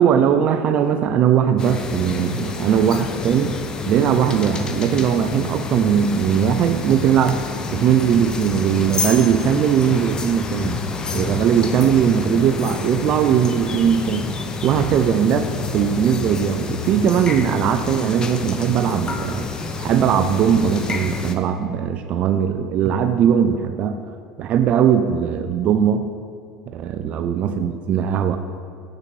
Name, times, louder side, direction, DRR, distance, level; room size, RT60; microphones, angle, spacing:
voice 1, 0.0-3.6 3.9-7.4 7.7-10.8 11.1-14.3 14.6-19.4 19.8-24.0 24.4-26.1 26.7-28.4, right 8 dB, 50° right, 8 dB, 0.3 m, -19 dB
sound 1, 1.6-21.3, left 3 dB, 30° left, 0.5 m, -28 dB
7.3 x 6.5 x 3.1 m, 2.2 s
supercardioid pair, 95°, 3 cm